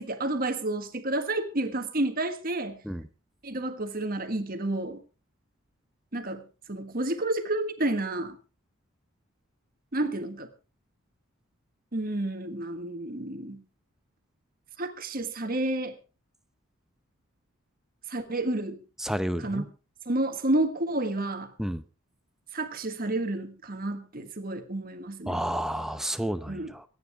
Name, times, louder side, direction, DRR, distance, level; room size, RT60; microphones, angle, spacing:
voice 1, 0.0-2.8 3.4-5.0 6.1-8.4 9.9-10.5 11.9-13.6 14.8-16.0 18.1-18.8 19.4-19.7 20.0-21.5 22.5-25.4 26.5-26.7, right 2 dB, 45° right, 1.5 m, -30 dB
voice 2, 19.0-19.6 21.6-21.8 25.3-26.8, equal, ahead, 0.7 m, -30 dB
25.0 x 9.5 x 3.5 m
head